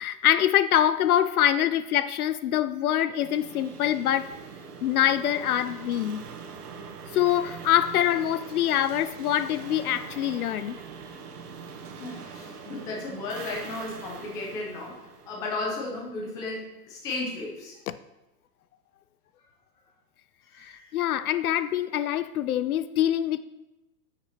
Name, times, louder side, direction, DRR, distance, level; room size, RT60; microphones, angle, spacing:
voice 1, 0.0-4.4 4.8-6.3 7.1-10.8 20.6-23.4, left 11 dB, 65° left, 0.5 m, -24 dB
sound 1, 3.1-16.0, right 5 dB, 65° right, 1.7 m, -43 dB
voice 2, 12.0-17.8 20.5-21.0, left 2 dB, 10° left, 0.5 m, -35 dB
9.6 x 6.0 x 4.3 m
hypercardioid pair, 155°, 48 cm